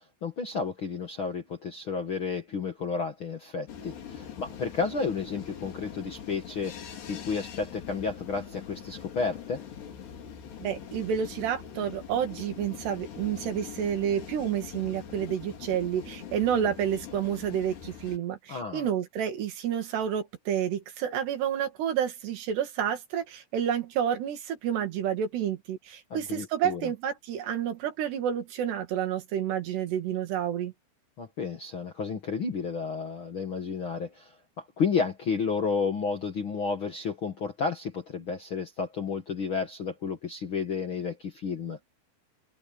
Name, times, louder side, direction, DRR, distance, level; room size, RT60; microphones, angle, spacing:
voice 1, 0.0-9.6 18.5-18.9 26.1-26.9 31.2-41.8, left 5 dB, 50° left, 1.6 m, -32 dB
sound 1, 3.7-18.2, left 8 dB, 85° left, 5.6 m, -43 dB
voice 2, 10.6-30.7, right 9 dB, 80° right, 4.6 m, -29 dB
omnidirectional pair, 4.7 m